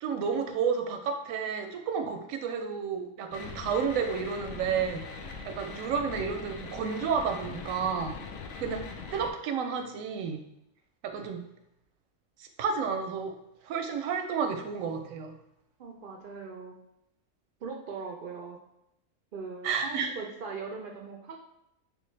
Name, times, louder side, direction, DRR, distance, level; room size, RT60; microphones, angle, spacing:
voice 1, 0.0-5.1 5.4-8.2 8.6-8.8 9.1-10.4 11.0-11.5 12.4-13.3 13.6-15.3 19.6-20.1, right 6 dB, 85° right, 6 dB, 1.0 m, -31 dB
sound 1, 3.3-9.3, left 4 dB, 85° left, 1.0 m, -41 dB
voice 2, 15.8-16.7 17.6-18.6 19.3-21.4, right 4 dB, 65° right, 2 dB, 0.5 m, -40 dB
3.4 x 3.2 x 3.2 m, 0.84 s
omnidirectional pair, 1.4 m